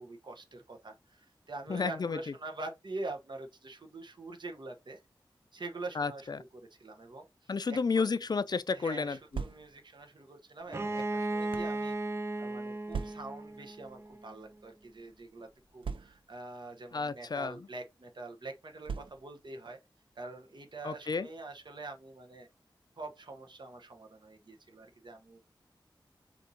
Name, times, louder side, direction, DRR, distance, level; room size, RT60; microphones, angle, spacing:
voice 1, 0.0-5.0 5.5-8.1 8.7-12.0 12.4-19.8 20.1-22.5 23.0-25.4, right 2 dB, 65° right, 1.0 m, -45 dB
voice 2, 1.7-2.2 6.0-6.4 7.5-9.4 16.9-17.6 20.8-21.3, left 4 dB, 55° left, 0.4 m, -32 dB
sound 1, 9.3-10.0 10.8-11.8 12.9-13.5 14.4-14.6 14.8-14.9 15.8-16.5 17.4-17.6 18.8-19.5, right 5 dB, 85° right, 0.4 m, -40 dB
Bowed string instrument, 10.7-14.4, right 2 dB, 30° right, 0.5 m, -36 dB
4.4 x 4.1 x 2.7 m
wide cardioid pair, 75°, 9 cm